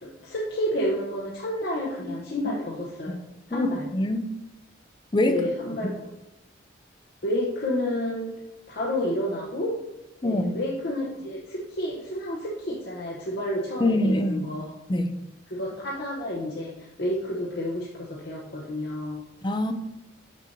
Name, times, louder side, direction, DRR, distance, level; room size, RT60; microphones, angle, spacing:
voice 1, 0.0-3.2 3.5-3.8 5.2-5.9 7.2-8.3 8.7-9.7 10.2-14.7 15.5-19.2, left 1 dB, 60° left, -4 dB, 0.9 m, -30 dB
voice 2, 3.5-4.2 5.1-5.4 10.2-10.6 13.8-14.4 14.9-15.1 19.4-19.7, left 1 dB, 25° left, 7 dB, 0.5 m, -24 dB
6.7 x 6.2 x 2.7 m, 0.92 s
head